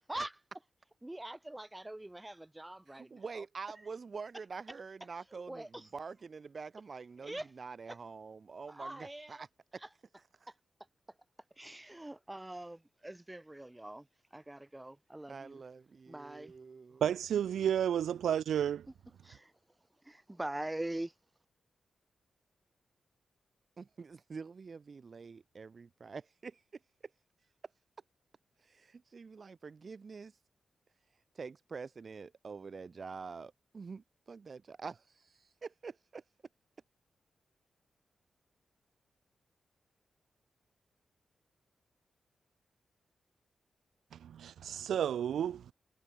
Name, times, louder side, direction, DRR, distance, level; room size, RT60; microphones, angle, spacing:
voice 1, 1.0-3.4 5.3-5.9 7.2-7.5 7.9-8.0 8.7-9.5 9.8-9.9 10.5-10.6 11.6-15.6 16.1-16.5 19.2-19.5 20.0-21.1, right 1 dB, 15° right, 5.1 m, -43 dB
voice 2, 2.9-9.5 9.7-9.8 15.3-17.2 23.8-26.6 28.6-30.3 31.4-36.2, right 5 dB, 50° right, 3.7 m, -46 dB
voice 3, 17.0-18.9 44.2-45.6, right 9 dB, 90° right, 0.9 m, -31 dB
cardioid pair, 70°, 0 cm